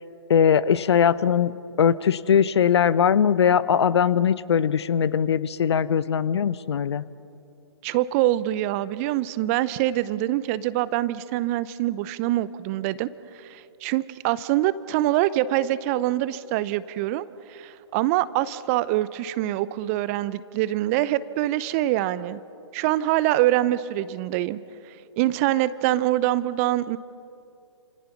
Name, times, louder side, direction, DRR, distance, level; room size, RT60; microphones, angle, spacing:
voice 1, 0.3-1.5 1.8-7.0, left 8 dB, 60° left, 18 dB, 0.9 m, -20 dB
voice 2, 7.8-13.1 13.3-22.4 22.7-24.6 24.9-27.0, right 15 dB, 30° right, 17 dB, 0.7 m, -24 dB
29.5 x 27.5 x 6.0 m, 2.7 s
figure-of-eight pair, 125°, 16 cm